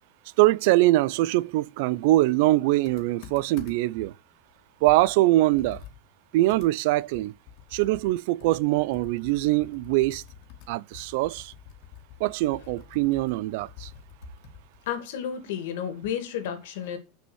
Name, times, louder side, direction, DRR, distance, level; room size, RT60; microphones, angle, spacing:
voice 1, 0.4-4.1 4.8-5.8 6.3-7.3 7.7-10.2 10.7-11.5 12.2-13.9, right 18 dB, 60° right, 0.3 m, -23 dB
Computer keyboard, 2.8-4.0 4.5-4.6 4.9-8.1 8.4-14.9, left 9 dB, 50° left, 2.1 m, -47 dB
voice 2, 14.9-17.0, left 9 dB, 75° left, 2.2 m, -32 dB
6.4 x 5.4 x 6.2 m
supercardioid pair, 150°, 0 cm